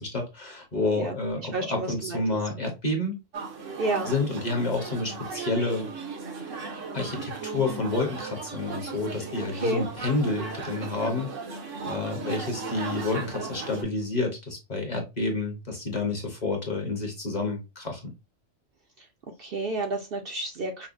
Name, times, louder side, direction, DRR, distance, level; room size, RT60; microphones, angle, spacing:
voice 1, 0.0-3.1 4.0-5.9 6.9-11.3 11.9-18.1, left 2 dB, 40° left, 1.1 m, -29 dB
voice 2, 1.5-2.2 3.8-4.1 9.5-9.8 19.4-20.9, right 2 dB, 60° right, 0.7 m, -30 dB
sound 1, 3.3-13.8, right 4 dB, 85° right, 1.3 m, -37 dB
5.3 x 2.1 x 2.5 m
omnidirectional pair, 1.3 m